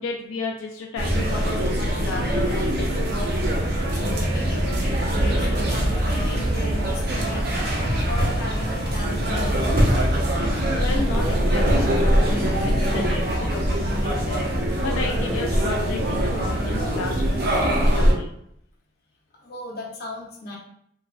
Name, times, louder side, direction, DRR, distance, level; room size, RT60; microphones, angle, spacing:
voice 1, 0.0-3.4 10.8-14.4 14.8-18.3, left 4 dB, 90° left, 0 dB, 0.3 m, -33 dB
sound 1, 1.0-17.9, equal, 20° right, 0.8 m, -41 dB
sound 2, 1.0-18.1, equal, 55° right, 0.5 m, -22 dB
voice 2, 3.9-7.7 8.1-10.3 19.4-20.6, left 1 dB, 50° left, -3 dB, 0.7 m, -37 dB
3.0 x 2.2 x 2.4 m, 0.73 s
head